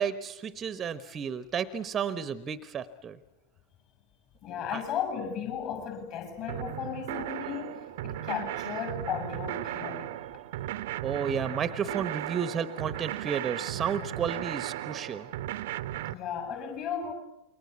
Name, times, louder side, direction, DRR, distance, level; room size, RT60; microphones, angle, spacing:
voice 1, 0.0-3.2 4.7-4.8 11.0-15.3, right 7 dB, 25° right, 1.1 m, -32 dB
voice 2, 4.4-10.2 16.1-17.1, left 8 dB, 40° left, 7.3 m, -35 dB
sound 1, 6.5-16.1, right 14 dB, 55° right, 0.9 m, -36 dB
28.5 x 23.0 x 8.5 m
figure-of-eight pair, 90°, 0 cm